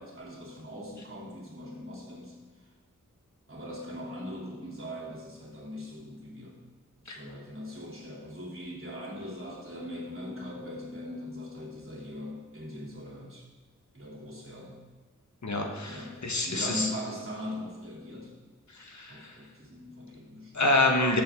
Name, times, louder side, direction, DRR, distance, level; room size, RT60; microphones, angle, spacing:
voice 1, 0.0-2.4 3.5-6.6 7.0-13.5 13.9-14.8 15.8-18.3 19.1-20.6, left 1 dB, 40° right, -2 dB, 3.1 m, -40 dB
voice 2, 15.4-16.9 18.7-19.3 20.5-21.2, left 2 dB, 65° left, 2 dB, 1.5 m, -27 dB
13.5 x 7.7 x 3.7 m, 1.3 s
wide cardioid pair, 50°, 31 cm